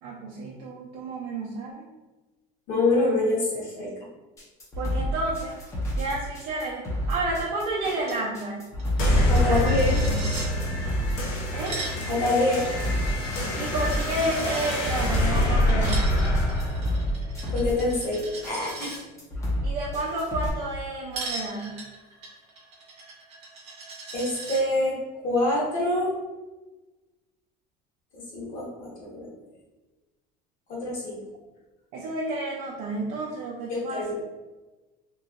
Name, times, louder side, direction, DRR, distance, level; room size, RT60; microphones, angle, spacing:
voice 1, 0.0-1.9 4.8-5.6 6.0-8.7 9.5-9.7 10.1-10.4 11.5-11.8 13.6-16.1 19.6-21.8 31.9-34.1, right 2 dB, 70° right, -4 dB, 0.5 m, -31 dB
voice 2, 2.7-3.9 9.3-10.0 12.1-12.7 17.5-18.9 24.1-26.1 28.1-29.3 30.7-31.2 33.9-34.1, left 2 dB, 45° left, -5 dB, 1.1 m, -26 dB
sound 1, 4.4-20.5, equal, 15° left, 0.5 m, -30 dB
Coin (dropping), 8.0-8.2 8.5-8.6 8.8-10.5 11.4-14.7 15.7-19.0 21.1-24.6, right 3 dB, 35° right, 0.7 m, -39 dB
sound 2, 9.0-18.0, left 1 dB, 90° left, 0.8 m, -25 dB
3.0 x 2.7 x 2.4 m, 1.2 s
cardioid pair, 170°, 18 cm